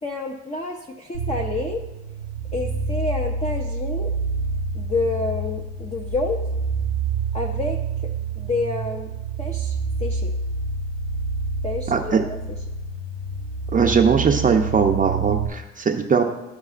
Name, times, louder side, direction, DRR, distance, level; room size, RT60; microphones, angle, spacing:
voice 1, 0.0-1.8 2.5-4.1 4.7-6.4 7.3-7.8 8.3-9.1 9.4-9.7 10.0-10.3 11.6-12.6, left 3 dB, 25° left, 1 dB, 0.7 m, -28 dB
sound 1, 1.1-15.5, right 4 dB, 85° left, 1.6 m, -28 dB
voice 2, 11.9-12.2 13.7-16.2, right 5 dB, 25° right, 3 dB, 0.6 m, -20 dB
13.0 x 4.8 x 2.4 m, 1.0 s
cardioid pair, 95°, 29 cm